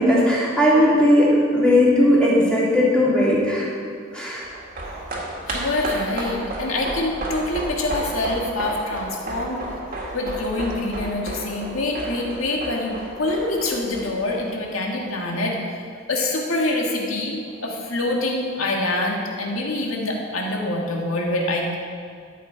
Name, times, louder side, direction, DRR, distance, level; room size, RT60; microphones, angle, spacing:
voice 1, 0.0-3.6 4.1-4.4, left 1 dB, 5° left, -7 dB, 2.7 m, -17 dB
sound 1, 4.4-15.0 15.3-15.4, right 1 dB, 45° right, 1.8 m, -32 dB
voice 2, 5.5-9.6 10.1-15.6 16.1-21.8, left 2 dB, 90° left, -1 dB, 1.7 m, -25 dB
13.0 x 7.4 x 4.5 m, 2.2 s
head